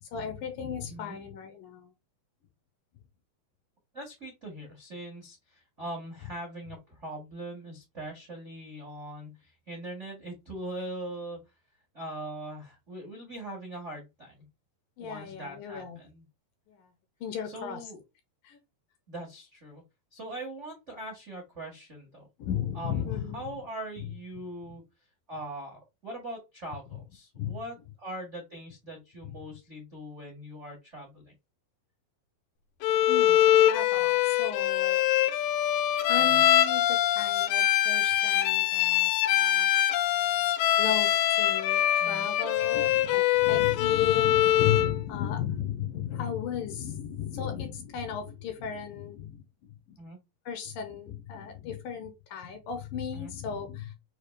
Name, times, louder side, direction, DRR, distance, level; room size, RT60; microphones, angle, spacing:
voice 1, 0.0-1.9 15.0-16.0 16.7-16.9 17.2-17.9 18.4-18.6 22.4-23.5 24.0-24.1 27.4-27.6 29.2-29.4 33.1-35.0 36.1-39.8 40.8-50.0 50.5-53.9, left 8 dB, 75° left, 2.3 m, -35 dB
voice 2, 3.9-11.4 11.9-14.4 15.0-16.2 17.4-18.0 19.1-19.8 20.1-22.3 22.7-24.8 25.3-31.3 36.2-36.5 42.0-42.3 46.1-46.3 50.0-50.2 53.1-53.3, right 1 dB, 75° right, 0.6 m, -41 dB
Bowed string instrument, 32.8-45.0, left 12 dB, 90° left, 1.9 m, -24 dB
6.6 x 2.4 x 3.2 m
omnidirectional pair, 4.5 m